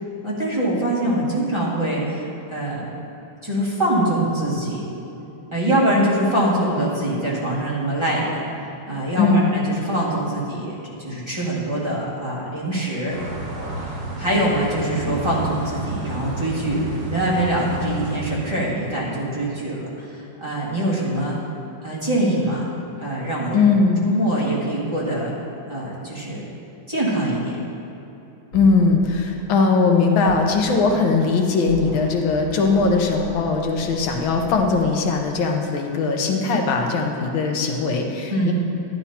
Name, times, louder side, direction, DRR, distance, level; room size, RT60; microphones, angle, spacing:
voice 1, 0.2-2.9 3.4-4.9 5.5-8.4 8.9-13.2 14.2-21.4 21.8-22.6 23.0-23.7 24.0-25.3 25.7-26.4 26.9-27.6 38.3-38.5, right 1 dB, 15° right, -7 dB, 1.8 m, -23 dB
voice 2, 9.2-9.5 23.5-24.0 28.5-38.5, left 4 dB, 85° left, 2 dB, 1.7 m, -19 dB
sound 1, 13.1-18.3, right 1 dB, 70° right, 3.2 m, -31 dB
sound 2, 28.5-28.7 29.0-29.2 30.3-31.0 31.7-32.1 32.4-34.9, right 3 dB, 55° left, 2.7 m, -37 dB
11.5 x 11.5 x 2.9 m, 2.9 s
omnidirectional pair, 2.1 m